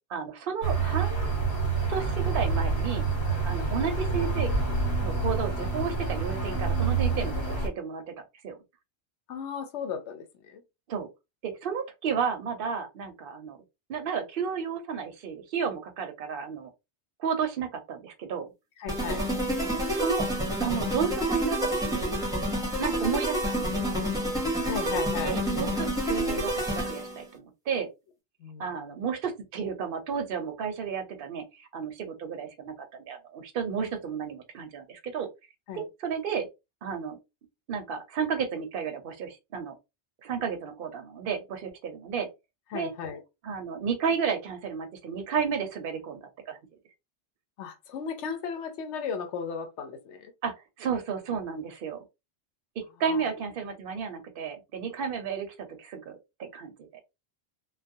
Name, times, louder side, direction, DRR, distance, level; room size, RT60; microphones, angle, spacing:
voice 1, 0.1-1.3 1.9-3.0 3.4-4.5 5.0-8.1 8.4-8.6 10.9-11.1 11.4-13.6 13.9-16.7 17.2-18.5 19.6-20.3 20.6-22.2 22.8-23.9 25.2-27.9 28.6-35.3 36.0-36.5 36.8-37.2 37.7-39.7 40.2-42.3 42.7-42.9 43.4-46.6 50.4-52.0 53.0-56.9, right 6 dB, 60° right, 0.8 m, -32 dB
sound 1, 0.6-7.7, right 4 dB, 70° left, 1.3 m, -27 dB
voice 2, 9.3-10.6 18.8-19.2 24.6-25.4 28.4-28.9 35.7-35.9 42.7-43.2 47.6-50.3 53.0-53.3, left 6 dB, 85° left, 0.9 m, -36 dB
sound 2, 18.9-27.2, equal, 5° right, 0.9 m, -28 dB
2.3 x 2.2 x 2.6 m
omnidirectional pair, 1.1 m